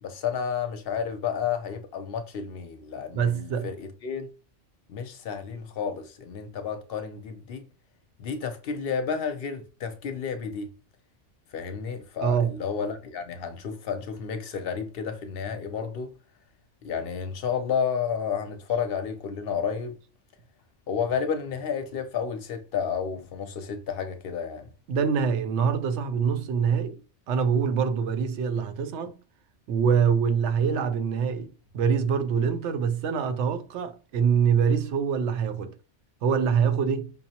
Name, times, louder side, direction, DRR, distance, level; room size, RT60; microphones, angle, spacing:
voice 1, 0.0-4.3 4.9-7.6 8.2-10.7 11.5-16.1 16.8-20.0 20.9-24.7, left 6 dB, 60° left, 0.7 m, -31 dB
voice 2, 3.1-3.7 12.2-12.5 24.9-27.0 27.3-29.1 29.7-31.5 31.7-35.7 36.2-37.1, right 6 dB, 75° right, 0.9 m, -24 dB
5.5 x 2.0 x 2.8 m
omnidirectional pair, 1.2 m